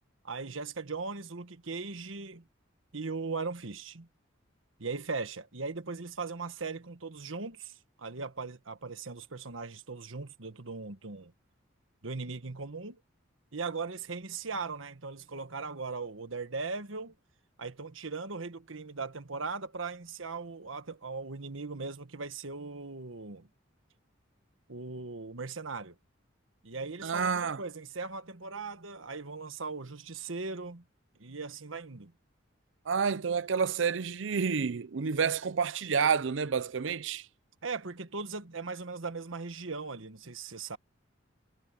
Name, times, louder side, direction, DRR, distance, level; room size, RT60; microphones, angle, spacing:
voice 1, 0.2-2.4 2.9-4.1 4.8-11.3 12.0-13.0 13.5-17.1 17.6-23.5 24.7-25.9 26.6-30.8 31.2-32.1 37.6-40.8, right 4 dB, 90° right, 1.4 m, -39 dB
voice 2, 27.0-27.6 32.9-37.3, right 6 dB, 70° right, 0.6 m, -29 dB
head